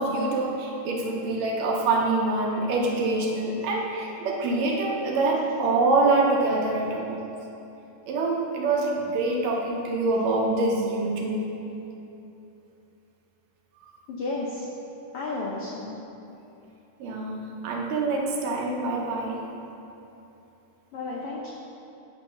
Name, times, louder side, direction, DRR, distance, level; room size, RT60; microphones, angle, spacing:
voice 1, 0.0-7.3 8.1-11.5 17.0-19.4, right 2 dB, 75° right, -1 dB, 1.8 m, -25 dB
voice 2, 14.1-14.7 15.1-15.9 20.9-21.5, left 3 dB, 85° left, -4 dB, 1.2 m, -32 dB
9.1 x 3.1 x 5.5 m, 3.0 s
omnidirectional pair, 3.4 m